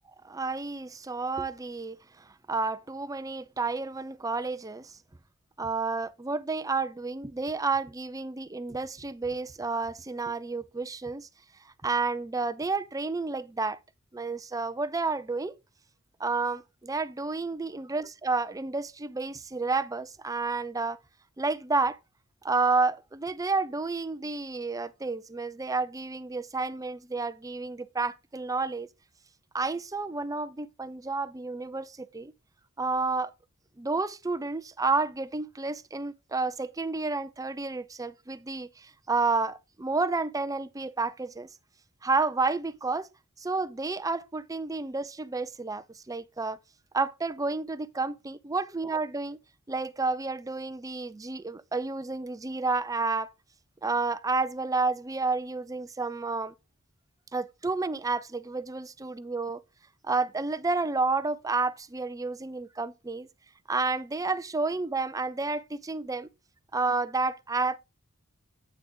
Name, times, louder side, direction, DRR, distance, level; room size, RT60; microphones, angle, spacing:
voice 1, 0.2-4.9 5.6-11.3 11.8-13.8 14.1-15.6 16.2-21.0 21.4-22.0 22.4-28.9 29.5-32.3 32.8-33.3 33.8-41.5 42.0-43.1 43.4-46.6 46.9-49.4 49.7-53.3 53.8-56.5 57.3-59.6 60.0-63.3 63.7-66.3 66.7-67.8, right 3 dB, 15° right, 0.5 m, -30 dB
8.6 x 6.2 x 3.7 m
head